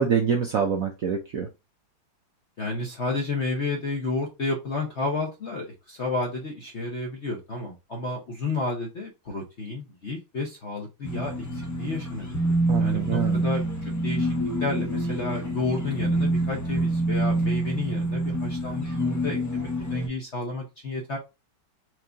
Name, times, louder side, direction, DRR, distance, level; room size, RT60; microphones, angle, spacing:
voice 1, 0.0-1.5 12.7-13.4, right 7 dB, 70° right, 2 dB, 0.8 m, -25 dB
voice 2, 2.6-14.3 14.6-21.2, left 3 dB, 50° left, 1 dB, 0.8 m, -31 dB
sound 1, 11.0-20.1, right 1 dB, 25° left, 0.3 m, -27 dB
4.7 x 2.6 x 3.4 m, 0.25 s
omnidirectional pair, 2.1 m